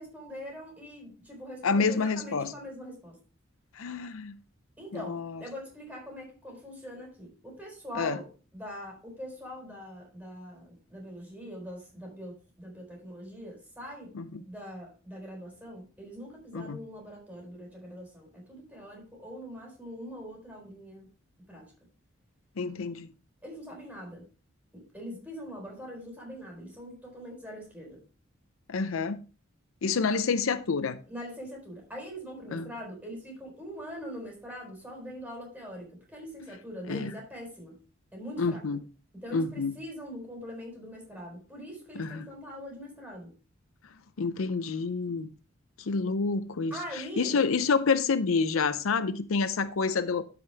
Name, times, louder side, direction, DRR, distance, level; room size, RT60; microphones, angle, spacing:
voice 1, 0.0-3.2 4.8-14.1 14.4-21.1 21.5-21.7 23.4-24.3 24.7-28.0 31.1-37.8 38.1-38.6 39.1-43.3 46.7-47.4, equal, 5° right, 4.0 m, -43 dB
voice 2, 1.6-2.5 3.7-4.3 4.9-5.4 7.9-8.2 14.1-14.4 16.5-16.8 22.6-23.1 28.7-29.2 29.8-31.0 32.5-32.7 36.9-37.1 38.4-38.8 39.3-39.7 42.0-42.2 44.2-45.3 45.8-50.2, left 4 dB, 75° left, 0.6 m, -28 dB
12.5 x 5.2 x 3.3 m
head